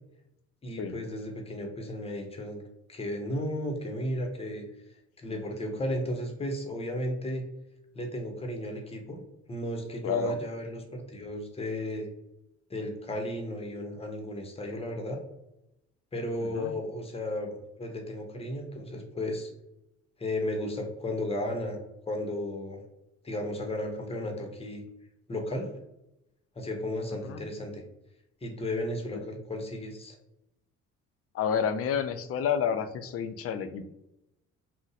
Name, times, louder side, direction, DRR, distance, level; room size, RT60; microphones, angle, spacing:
voice 1, 0.6-2.6 2.9-4.6 5.2-7.4 7.9-9.2 9.5-12.1 12.7-15.2 16.1-19.5 20.2-21.8 22.1-22.8 23.2-24.8 25.3-25.7 26.6-27.8 28.4-30.2, left 1 dB, 20° left, 3 dB, 0.7 m, -34 dB
voice 2, 10.0-10.4 16.4-16.7 27.1-27.4 29.1-29.2 31.3-33.8, left 7 dB, 50° left, 10 dB, 0.4 m, -30 dB
2.6 x 2.0 x 3.9 m, 0.87 s
cardioid pair, 90°, 30 cm